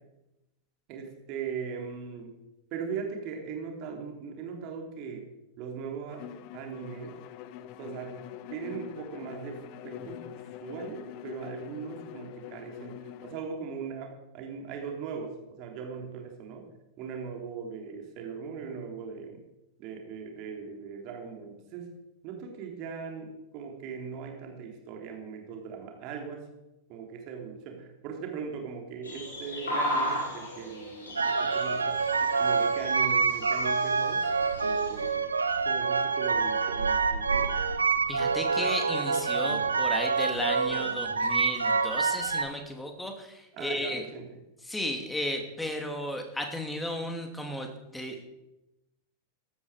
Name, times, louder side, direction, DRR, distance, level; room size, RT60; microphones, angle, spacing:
voice 1, 0.9-2.3 2.7-5.2 5.6-6.2 6.5-7.2 7.8-8.2 8.5-16.6 17.0-19.4 19.8-21.9 22.2-26.4 26.9-32.0 32.4-34.2 34.6-35.1 35.6-37.5 43.5-44.3, right 6 dB, 40° right, 2 dB, 3.4 m, -39 dB
Bowed string instrument, 6.1-13.5, left 11 dB, 45° left, 0.8 m, -44 dB
Great Spotted Woodpecker, 29.0-35.1, equal, 70° left, 6.7 m, -36 dB
sound 1, 31.2-42.4, right 5 dB, 75° right, 1.0 m, -27 dB
voice 2, 38.1-44.1 44.6-48.3, left 1 dB, 5° left, 4 dB, 2.6 m, -34 dB
15.5 x 12.5 x 5.0 m, 0.97 s
figure-of-eight pair, 90°, 0 cm